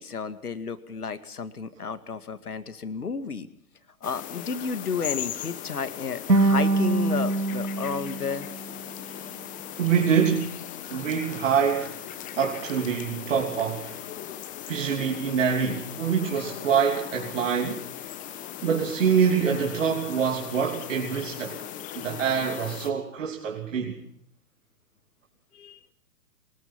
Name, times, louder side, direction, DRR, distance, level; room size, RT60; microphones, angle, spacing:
voice 1, 0.0-3.5 4.0-8.5 25.5-25.8, left 5 dB, 70° left, 2.2 m, -32 dB
sound 1, 4.0-22.9, left 11 dB, 15° left, 1.4 m, -39 dB
sound 2, 6.3-9.4, right 2 dB, 80° right, 2.1 m, -25 dB
voice 2, 9.8-10.6 10.9-12.0 12.3-14.0 14.7-17.8 18.6-21.6 22.0-24.0, right 7 dB, 50° right, 3.2 m, -25 dB
23.0 x 20.5 x 5.8 m
figure-of-eight pair, 120°, 47 cm